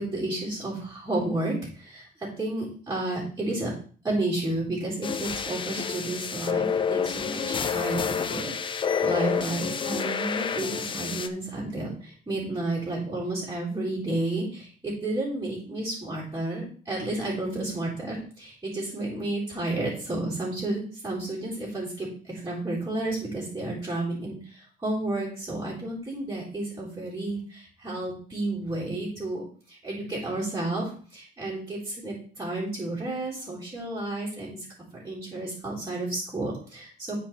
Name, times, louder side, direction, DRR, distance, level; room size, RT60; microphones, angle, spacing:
voice 1, 0.0-3.7 4.0-34.7 35.0-37.1, right 2 dB, 20° right, -8 dB, 3.8 m, -31 dB
sound 1, 5.0-11.3, left 6 dB, 30° left, 0.6 m, -29 dB
8.9 x 4.9 x 4.5 m, 0.43 s
cardioid pair, 110°, 17 cm